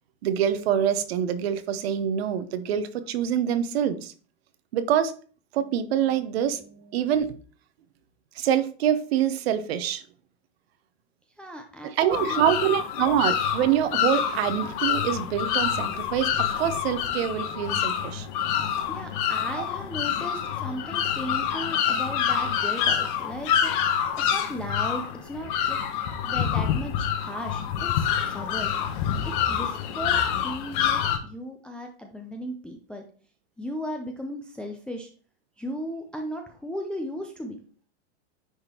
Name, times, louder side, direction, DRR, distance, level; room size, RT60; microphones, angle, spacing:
voice 1, 0.2-4.1 4.7-5.1 5.5-7.4 8.3-10.0 11.9-18.3 19.6-19.7, right 9 dB, 65° right, 12 dB, 0.9 m, -25 dB
voice 2, 11.4-13.1 18.9-23.7 24.2-25.8 26.2-28.7 29.2-33.0 33.6-35.1 35.6-37.6, equal, 5° left, 2 dB, 0.5 m, -36 dB
sound 1, 12.1-31.2, left 8 dB, 45° left, 1.0 m, -27 dB
9.9 x 3.7 x 2.9 m, 0.41 s
hypercardioid pair, 130°, 34 cm